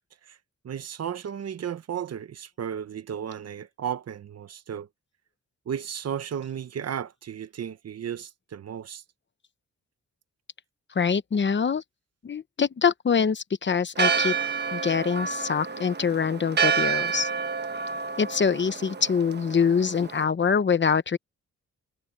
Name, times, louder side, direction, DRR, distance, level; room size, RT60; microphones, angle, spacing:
voice 1, 0.6-4.9 5.7-9.0, right 8 dB, 55° right, 0.9 m, -34 dB
voice 2, 10.9-11.8 12.2-14.3 14.7-17.3 18.2-21.2, left 6 dB, 40° left, 0.9 m, -24 dB
Church bell, 14.0-20.2, right 6 dB, 35° right, 1.1 m, -29 dB
wide cardioid pair, 130°, 30 cm